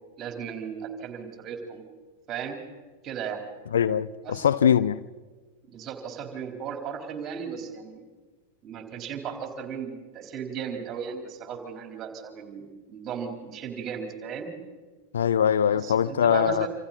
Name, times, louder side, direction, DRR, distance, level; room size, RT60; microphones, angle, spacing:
voice 1, 0.2-1.8 2.3-2.6 3.0-3.4 4.2-4.5 5.7-8.0 8.6-14.5 15.7-16.7, right 7 dB, 30° right, 4.1 m, -36 dB
voice 2, 3.7-5.0 15.1-16.7, left 8 dB, 65° left, 0.6 m, -22 dB
27.5 x 27.0 x 4.3 m
figure-of-eight pair, 90°, 0 cm